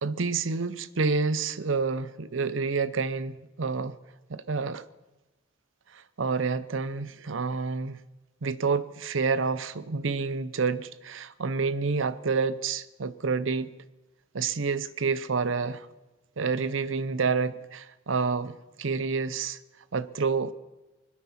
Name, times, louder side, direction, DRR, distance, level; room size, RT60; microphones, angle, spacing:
voice 1, 0.0-3.9 4.3-4.8 5.9-8.0 8.4-13.7 14.3-15.9 16.4-19.6 19.9-20.5, right 4 dB, 85° right, 14 dB, 0.7 m, -28 dB
24.5 x 8.8 x 5.8 m, 1.1 s
head